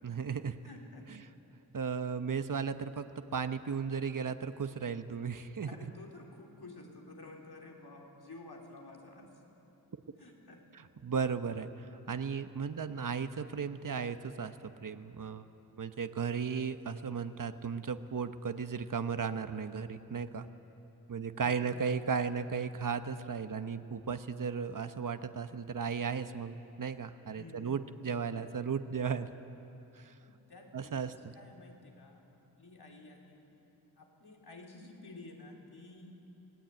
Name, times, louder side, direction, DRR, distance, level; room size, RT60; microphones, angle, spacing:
voice 1, 0.0-0.6 1.7-5.7 10.7-14.6 14.8-15.5 15.8-20.5 21.1-29.3 29.9-30.1 30.7-31.3, right 6 dB, 55° right, 9 dB, 1.0 m, -35 dB
voice 2, 0.6-1.1 5.6-9.3 10.2-10.6 12.5-12.8 21.4-21.8 27.3-27.8 30.2-33.5 34.0-36.2, left 2 dB, 75° left, 0 dB, 3.6 m, -52 dB
25.5 x 19.5 x 9.1 m, 2.9 s
wide cardioid pair, 85°, 39 cm